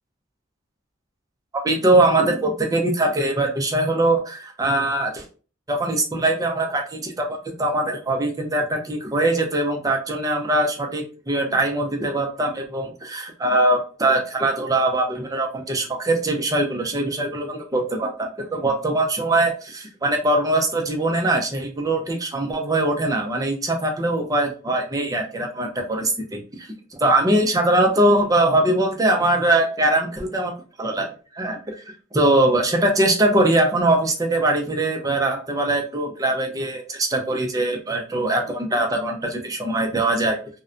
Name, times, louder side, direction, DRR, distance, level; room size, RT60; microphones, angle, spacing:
voice 1, 1.6-5.2 5.7-26.7 27.0-31.1 31.3-31.8 32.1-40.4, right 1 dB, 20° right, 2 dB, 0.5 m, -22 dB
2.6 x 2.1 x 2.4 m, 0.37 s
head